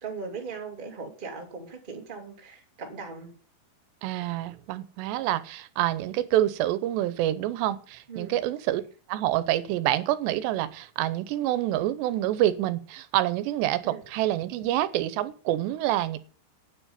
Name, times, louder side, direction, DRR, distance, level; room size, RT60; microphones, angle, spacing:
voice 1, 0.0-3.3 8.1-8.4 13.8-14.0, right 5 dB, 15° right, 1 dB, 1.8 m, -39 dB
voice 2, 4.0-8.8 9.1-16.2, right 13 dB, 85° right, 14 dB, 3.0 m, -27 dB
9.5 x 7.3 x 8.7 m, 0.40 s
omnidirectional pair, 4.8 m